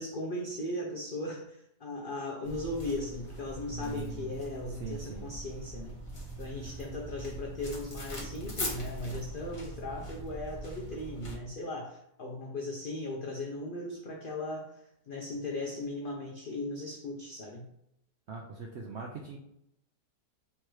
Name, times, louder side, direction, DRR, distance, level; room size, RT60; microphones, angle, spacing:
voice 1, 0.0-6.0 6.4-17.7, left 2 dB, 85° left, -1 dB, 0.4 m, -38 dB
sound 1, 2.4-11.4, right 1 dB, 25° left, 0.9 m, -41 dB
voice 2, 3.7-4.3 4.7-5.3 18.3-19.4, right 5 dB, 70° right, 0 dB, 0.6 m, -41 dB
3.4 x 3.0 x 4.6 m, 0.77 s
omnidirectional pair, 1.7 m